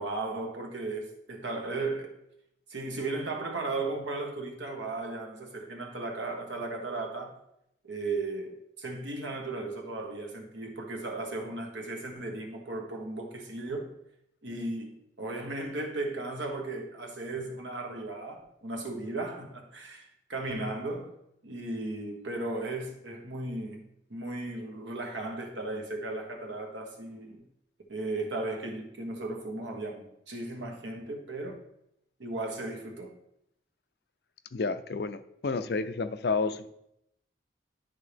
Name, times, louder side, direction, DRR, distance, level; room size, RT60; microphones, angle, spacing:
voice 1, 0.0-2.2 2.7-7.4 7.8-13.9 14.4-21.1 21.4-23.8 24.1-27.4 27.9-31.6 32.2-33.1, right 2 dB, 85° right, 1.4 m, -36 dB
voice 2, 34.5-36.7, left 4 dB, 60° left, 0.5 m, -30 dB
11.0 x 3.7 x 3.4 m
head